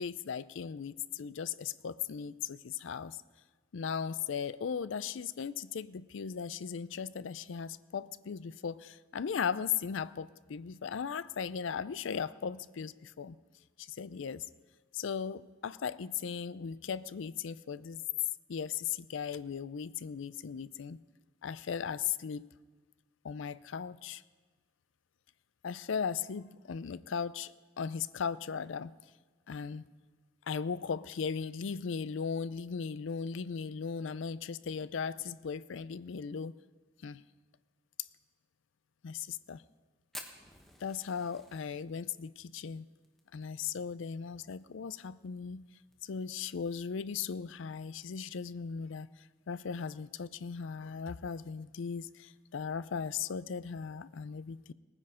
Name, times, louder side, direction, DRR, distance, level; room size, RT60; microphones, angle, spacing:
voice 1, 0.0-3.2 3.7-13.4 13.8-14.5 14.9-18.0 18.5-21.0 21.4-22.5 23.2-24.2 25.6-28.9 29.5-29.9 30.5-36.5 37.0-37.2 39.0-39.6 40.8-42.9 43.3-45.7 46.0-49.1 49.5-54.7, left 6 dB, 70° left, 16 dB, 0.4 m, -37 dB
Fire, 40.1-44.6 44.9-45.0 45.3-45.4 45.7-46.2 46.7-46.8 47.8-48.0, left 1 dB, ahead, 1.0 m, -50 dB
18.5 x 9.8 x 5.0 m, 1.4 s
head